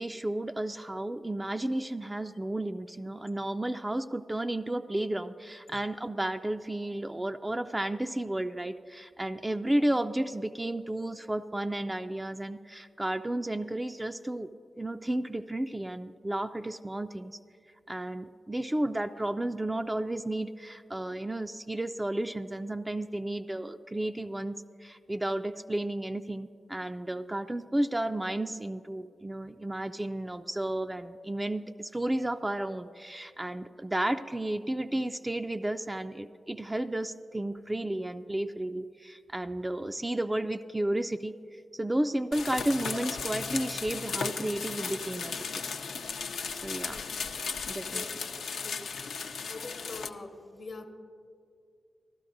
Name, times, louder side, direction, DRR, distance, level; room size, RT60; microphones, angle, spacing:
voice 1, 0.0-14.5 14.8-17.4 17.9-45.4 46.5-47.0 47.7-48.1, right 1 dB, 20° right, 7 dB, 0.3 m, -32 dB
sound 1, 42.3-50.1, left 5 dB, 80° left, 0.5 m, -36 dB
voice 2, 49.5-50.9, left 3 dB, 60° left, 7 dB, 0.8 m, -43 dB
15.0 x 12.0 x 2.6 m, 2.3 s
supercardioid pair, 45°, 0 cm